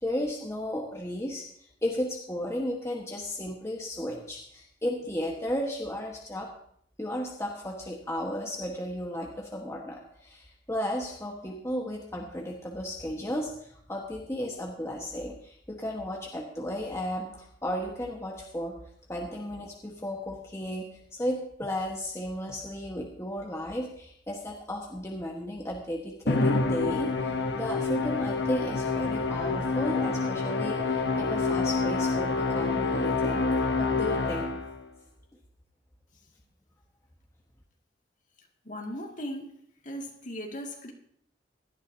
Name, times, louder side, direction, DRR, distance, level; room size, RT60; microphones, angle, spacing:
voice 1, 0.0-1.4 1.8-6.5 7.0-18.8 19.1-33.4 33.8-34.5, equal, 15° left, -2 dB, 1.4 m, -34 dB
Musical instrument, 26.3-34.8, left 3 dB, 85° left, 1.1 m, -27 dB
voice 2, 38.7-39.5 39.8-40.9, equal, 45° left, 1 dB, 2.3 m, -37 dB
17.5 x 12.5 x 2.8 m, 0.68 s
head